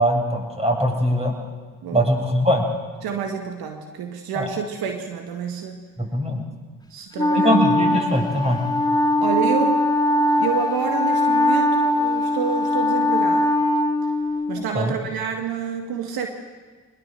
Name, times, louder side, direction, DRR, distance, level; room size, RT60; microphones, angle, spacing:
voice 1, 0.0-1.3 1.9-2.6 4.3-4.5 6.0-6.4 7.3-8.6 14.7-15.0, equal, 15° right, 1 dB, 8.0 m, -21 dB
voice 2, 3.0-5.9 6.9-7.6 9.2-9.9 10.4-13.5 14.5-16.3, right 6 dB, 75° right, 5 dB, 2.0 m, -28 dB
Wind instrument woodwind instrument, 7.2-14.7, left 1 dB, 10° left, 2.1 m, -21 dB
23.5 x 20.5 x 7.8 m, 1.5 s
hypercardioid pair, 50°, 36 cm